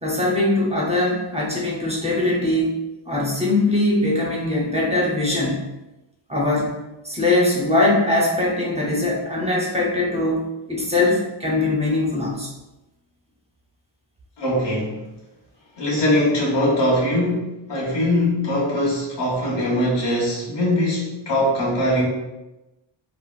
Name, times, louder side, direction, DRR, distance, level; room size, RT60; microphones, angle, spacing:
voice 1, 0.0-2.8 3.1-5.6 6.3-6.7 7.0-12.5, left 2 dB, 15° right, -4 dB, 0.7 m, -21 dB
voice 2, 14.4-15.0 15.8-22.0, left 1 dB, 60° left, -6 dB, 1.2 m, -21 dB
3.9 x 2.0 x 2.4 m, 1.0 s
wide cardioid pair, 110°, 48 cm